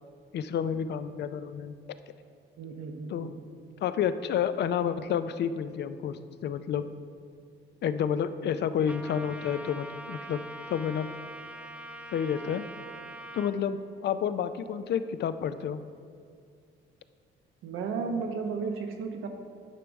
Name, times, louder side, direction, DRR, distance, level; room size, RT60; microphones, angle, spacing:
voice 1, 0.3-1.7 3.1-3.3 3.8-6.9 7.8-10.4 10.7-11.1 12.1-12.7 13.3-13.8 14.0-15.8, left 8 dB, 60° left, 12 dB, 0.4 m, -30 dB
voice 2, 2.6-3.3 6.8-6.9 17.6-19.3, right 5 dB, 85° right, 4 dB, 0.9 m, -34 dB
Trumpet, 8.9-13.5, right 1 dB, 5° right, 0.5 m, -43 dB
10.0 x 3.4 x 6.2 m, 2.3 s
cardioid pair, 90°, 20 cm